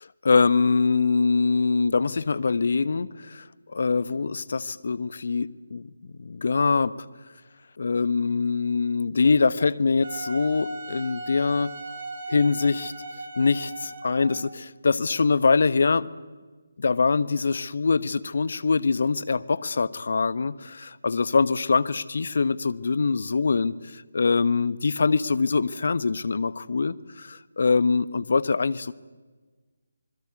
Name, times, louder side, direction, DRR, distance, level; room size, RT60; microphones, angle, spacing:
voice 1, 0.2-3.4 3.7-5.9 6.2-6.9 7.8-11.7 12.3-12.9 13.4-16.1 16.8-28.9, left 4 dB, 55° left, 18 dB, 1.0 m, -23 dB
Wind instrument woodwind instrument, 10.0-14.5, right 2 dB, 45° right, 4.3 m, -38 dB
26.0 x 21.0 x 8.4 m, 1.4 s
figure-of-eight pair, 150°, 0 cm